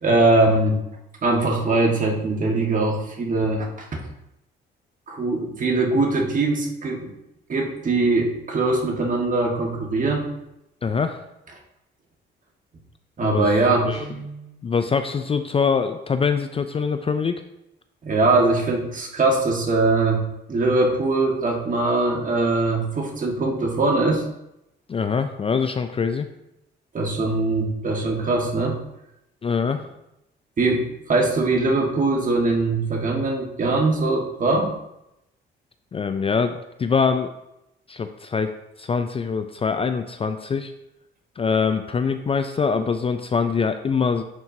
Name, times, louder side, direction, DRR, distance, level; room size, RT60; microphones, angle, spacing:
voice 1, 0.0-0.8 1.2-3.9 5.1-7.1 7.5-10.2 13.2-14.0 18.0-20.2 20.5-24.2 26.9-28.8 30.6-34.7, right 2 dB, 40° right, 0 dB, 1.6 m, -21 dB
voice 2, 10.8-11.2 13.2-13.5 13.9-14.0 14.6-17.4 24.9-26.3 29.4-29.8 35.9-37.3 37.9-40.7 41.4-44.2, left 5 dB, 30° left, 8 dB, 0.4 m, -24 dB
Guitar, 13.9-14.7, right 4 dB, 70° right, 2.5 m, -39 dB
9.5 x 4.5 x 2.8 m, 0.86 s
cardioid pair, 90°, 20 cm